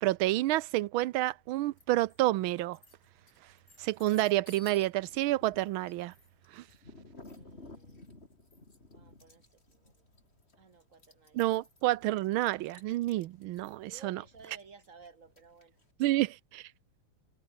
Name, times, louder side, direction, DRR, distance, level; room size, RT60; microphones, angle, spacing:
voice 1, 0.0-2.8 3.8-6.1 6.5-6.6 11.3-14.2 16.0-16.7, right 16 dB, 80° right, 1.5 m, -29 dB
sound 1, 1.8-2.2 2.6-15.8, left 2 dB, 30° left, 4.6 m, -55 dB
voice 2, 7.2-8.1 8.8-10.0 10.5-11.6 13.9-15.8, right 5 dB, 40° right, 2.7 m, -57 dB
omnidirectional pair, 2.3 m